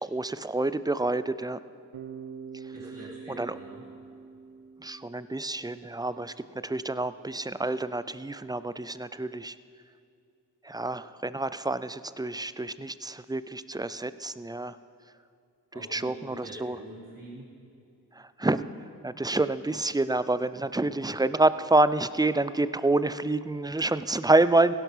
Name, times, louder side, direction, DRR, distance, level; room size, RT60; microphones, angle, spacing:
voice 1, 0.0-1.6 3.3-3.5 4.8-9.6 10.6-14.8 15.9-16.8 18.1-18.7 19.0-24.7, right 2 dB, 10° right, 14 dB, 0.4 m, -27 dB
Bass guitar, 1.9-6.0, right 6 dB, 75° right, 0.9 m, -45 dB
voice 2, 2.7-3.9 15.7-17.5 20.8-20.9, right 1 dB, 50° right, -6 dB, 3.9 m, -45 dB
16.0 x 11.5 x 5.7 m, 2.5 s
cardioid pair, 45°, 42 cm